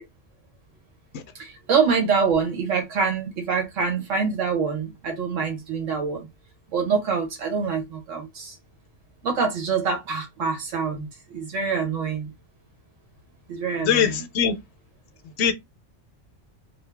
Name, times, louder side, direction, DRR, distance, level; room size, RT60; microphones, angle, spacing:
voice 1, 1.4-6.3 6.7-8.6 9.2-12.3 13.5-14.2, right 5 dB, 90° right, 1.3 m, -25 dB
voice 2, 13.8-14.5 15.4-15.5, left 7 dB, 70° left, 0.8 m, -21 dB
2.6 x 2.5 x 3.2 m
omnidirectional pair, 1.3 m